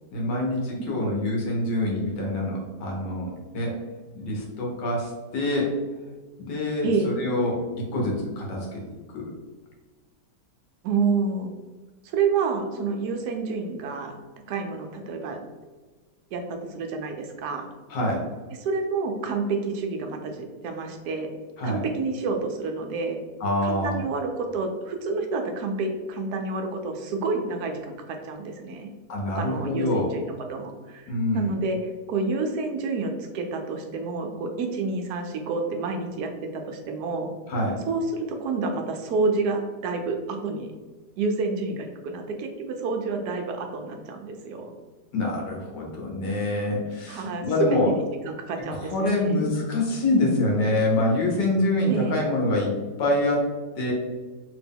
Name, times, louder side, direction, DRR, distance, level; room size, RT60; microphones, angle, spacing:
voice 1, 0.1-3.8 4.1-5.7 6.4-8.8 9.1-9.3 17.9-18.3 21.6-21.8 23.4-24.0 29.1-30.1 31.1-31.5 37.5-37.8 45.1-47.9 48.8-53.9, left 1 dB, 85° left, -1 dB, 1.7 m, -26 dB
voice 2, 10.8-11.5 12.0-14.2 14.5-15.4 16.3-17.7 18.6-21.3 21.6-23.2 23.6-28.9 29.3-31.8 32.1-37.3 37.9-40.7 41.2-44.7 47.1-49.4 51.9-52.1, right 4 dB, 75° right, 4 dB, 1.1 m, -29 dB
3.4 x 2.9 x 3.5 m, 1.3 s
omnidirectional pair, 1.8 m